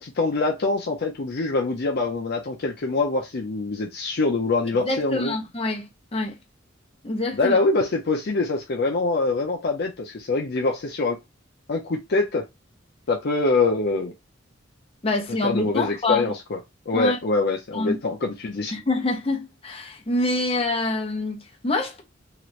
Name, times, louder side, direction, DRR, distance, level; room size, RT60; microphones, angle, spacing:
voice 1, 0.0-5.3 7.3-11.2 11.7-12.4 13.1-14.1 15.4-16.6 16.9-18.7, left 3 dB, 55° left, 0.5 m, -24 dB
voice 2, 4.8-6.4 7.0-7.6 15.0-16.3 16.9-17.2 17.7-18.0 18.7-22.0, left 2 dB, 30° left, 0.9 m, -26 dB
2.9 x 2.5 x 3.1 m
head